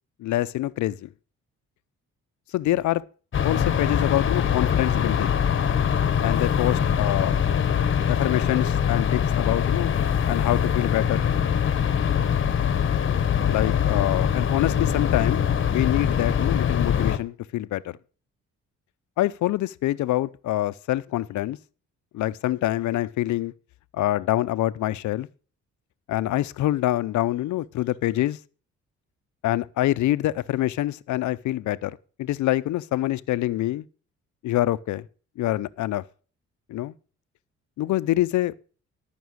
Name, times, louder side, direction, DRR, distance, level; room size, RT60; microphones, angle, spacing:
voice 1, 0.2-1.1 2.5-3.0 3.4-5.4 6.2-7.4 8.1-9.9 10.3-11.3 13.5-18.0 19.2-21.6 22.1-23.5 23.9-25.3 26.1-28.4 29.4-33.8 34.4-35.1 35.4-36.0 36.7-36.9 37.8-38.5, left 15 dB, 70° left, 0.6 m, -25 dB
sound 1, 3.3-17.2, left 8 dB, 40° left, 1.0 m, -23 dB
13.0 x 6.0 x 6.3 m
cardioid pair, 90°, 30 cm